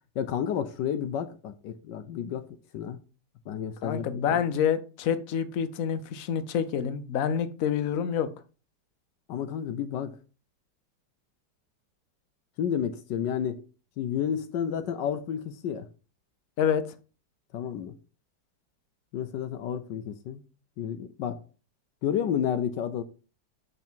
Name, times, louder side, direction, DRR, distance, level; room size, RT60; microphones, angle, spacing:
voice 1, 0.2-2.5 2.7-3.0 3.5-4.4 9.3-10.1 12.6-13.6 14.0-15.9 17.5-18.0 19.1-20.4 20.8-21.4 22.0-23.0, left 9 dB, 75° left, 1.3 m, -31 dB
voice 2, 3.8-8.3 16.6-16.8, left 8 dB, 60° left, 1.1 m, -27 dB
6.9 x 5.8 x 4.5 m
omnidirectional pair, 1.9 m